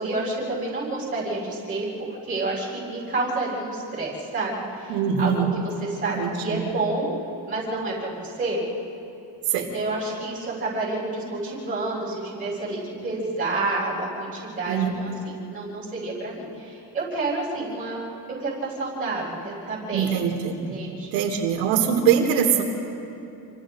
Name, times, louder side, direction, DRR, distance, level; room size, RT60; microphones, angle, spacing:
voice 1, 0.0-7.1 7.5-8.6 9.5-18.0 18.3-20.1 20.7-21.1, right 2 dB, 20° right, -6 dB, 6.6 m, -29 dB
voice 2, 4.9-5.5 6.2-6.6 9.5-9.7 14.7-15.0 19.9-20.7 21.1-22.6, right 7 dB, 80° right, 2 dB, 3.4 m, -23 dB
29.0 x 25.5 x 3.9 m, 2.8 s
cardioid pair, 165°, 44 cm